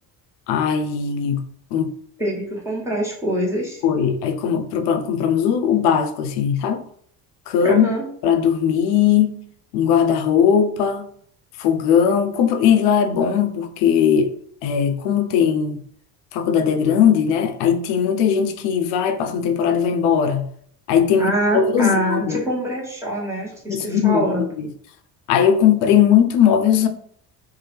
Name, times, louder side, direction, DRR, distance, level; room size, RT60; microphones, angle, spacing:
voice 1, 0.5-1.4 1.7-2.0 3.8-6.8 7.5-7.9 8.2-9.4 9.7-11.1 11.6-14.3 14.6-15.8 16.3-20.5 20.9-22.4 23.7-24.7 25.3-26.9, left 8 dB, 60° left, 0.5 m, -19 dB
voice 2, 2.2-3.8 7.6-8.0 21.2-24.4, right 1 dB, 5° right, 1.2 m, -24 dB
2.7 x 2.0 x 3.2 m
hypercardioid pair, 55°, 49 cm